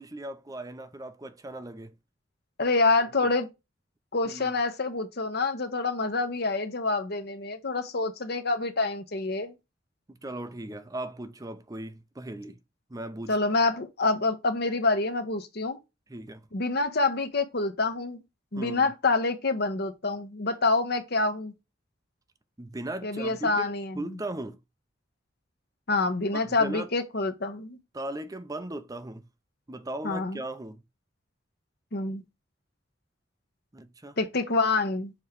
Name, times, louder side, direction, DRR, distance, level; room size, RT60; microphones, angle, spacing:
voice 1, 0.0-1.9 4.2-4.5 10.1-12.6 12.9-13.3 16.1-16.5 18.6-18.9 22.6-24.6 26.3-26.9 27.9-29.2 29.7-30.8 33.7-34.2, right 1 dB, 20° right, 0.6 m, -38 dB
voice 2, 2.6-3.5 4.1-9.5 13.3-15.8 16.5-18.2 18.5-21.5 23.0-24.2 25.9-27.8 30.0-30.4 31.9-32.2 34.2-35.1, left 3 dB, 60° left, 1.1 m, -27 dB
7.1 x 3.1 x 4.8 m
head